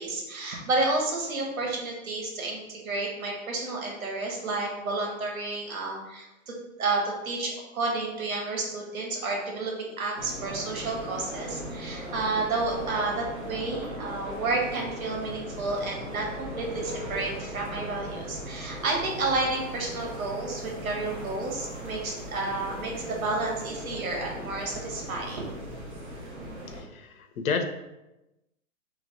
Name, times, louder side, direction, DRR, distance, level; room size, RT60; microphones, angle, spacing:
voice 1, 0.0-6.3 6.8-25.4, right 3 dB, 80° right, 0 dB, 1.5 m, -31 dB
sound 1, 10.2-26.8, equal, 55° right, 1.3 m, -38 dB
voice 2, 26.7-27.6, left 5 dB, 85° left, 7 dB, 0.7 m, -30 dB
3.3 x 2.9 x 4.0 m, 0.98 s
hypercardioid pair, 180°, 41 cm